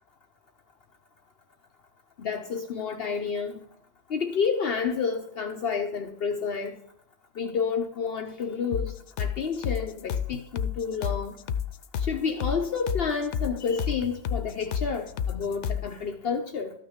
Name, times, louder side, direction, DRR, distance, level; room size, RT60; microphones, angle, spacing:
voice 1, 2.2-3.6 4.1-6.8 7.4-11.4 12.0-16.7, left 5 dB, 60° left, 3 dB, 0.9 m, -30 dB
sound 1, 8.7-15.9, left 8 dB, 85° left, 0.9 m, -31 dB
13.0 x 6.2 x 3.6 m, 0.69 s
omnidirectional pair, 1.2 m